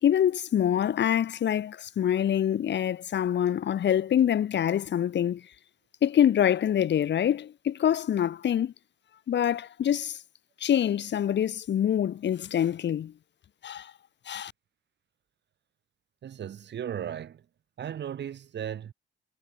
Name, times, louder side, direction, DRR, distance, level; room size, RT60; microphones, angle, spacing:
voice 1, 0.0-5.4 6.0-8.7 9.3-10.2 10.6-13.1 13.6-13.9 14.3-14.5, left 10 dB, 65° left, 2.9 m, -25 dB
voice 2, 16.2-17.4 17.8-18.9, right 9 dB, 60° right, 6.3 m, -36 dB
cardioid pair, 90°, 20 cm